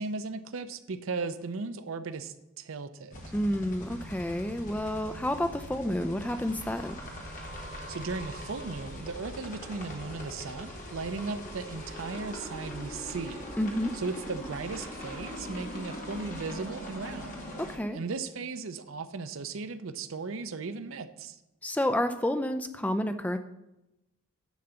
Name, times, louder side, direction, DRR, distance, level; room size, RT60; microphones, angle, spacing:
voice 1, 0.0-3.1 7.9-13.5 13.9-17.4 17.9-21.4, right 4 dB, 70° right, 11 dB, 0.6 m, -36 dB
sound 1, 3.1-17.8, equal, 35° left, 1.4 m, -41 dB
voice 2, 3.3-7.0 13.6-13.9 17.7-18.0 21.6-23.4, left 1 dB, 5° left, 8 dB, 0.3 m, -30 dB
10.5 x 3.9 x 6.8 m, 0.92 s
head